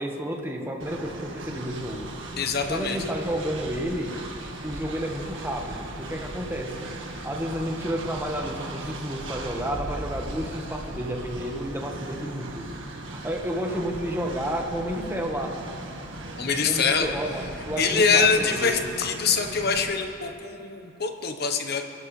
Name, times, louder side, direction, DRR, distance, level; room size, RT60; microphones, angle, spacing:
voice 1, 0.0-2.1 2.7-4.2 4.6-6.7 7.2-12.7 13.1-15.6 16.6-18.8, equal, 10° right, 1 dB, 1.3 m, -31 dB
Train, 0.8-19.9, right 1 dB, 85° right, 1.6 m, -38 dB
voice 2, 2.4-3.0 16.4-17.1 17.8-21.8, left 5 dB, 55° left, 5 dB, 1.1 m, -24 dB
23.0 x 12.5 x 3.3 m, 2.9 s
head